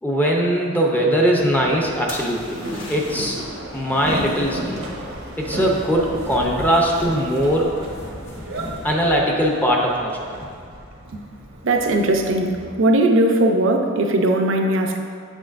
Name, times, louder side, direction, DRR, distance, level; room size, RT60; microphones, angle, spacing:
voice 1, 0.0-2.6 2.9-3.4 3.7-4.8 5.4-7.8 8.8-10.3, equal, 10° left, -1 dB, 0.6 m, -20 dB
Boat Water vehicle, 1.4-12.7, right 1 dB, 85° right, 1.0 m, -35 dB
sound 1, 2.1-3.5 7.2-7.7, left 2 dB, 65° left, 1.0 m, -38 dB
sound 2, 4.0-9.1, equal, 35° left, 1.0 m, -37 dB
voice 2, 11.6-15.0, right 1 dB, 65° right, 4 dB, 0.6 m, -19 dB
7.3 x 6.2 x 2.5 m, 2.4 s
head